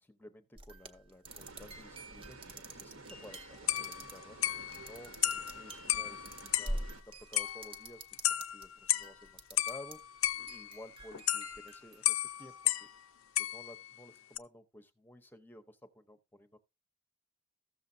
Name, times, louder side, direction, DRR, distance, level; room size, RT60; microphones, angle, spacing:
voice 1, 0.0-5.2 5.5-10.0 10.3-12.9 13.4-16.6, left 1 dB, 10° left, 0.8 m, -54 dB
sound 1, 0.6-8.7 9.0-9.9 10.2-12.6, right 1 dB, 25° right, 0.8 m, -46 dB
sound 2, 1.3-7.0, right 3 dB, 75° right, 1.2 m, -53 dB
sound 3, 3.3-3.4 3.7-6.9 7.3-9.2 9.6-13.0 13.3-14.0 14.3-14.4, left 14 dB, 85° left, 0.5 m, -34 dB
14.0 x 7.1 x 2.7 m
head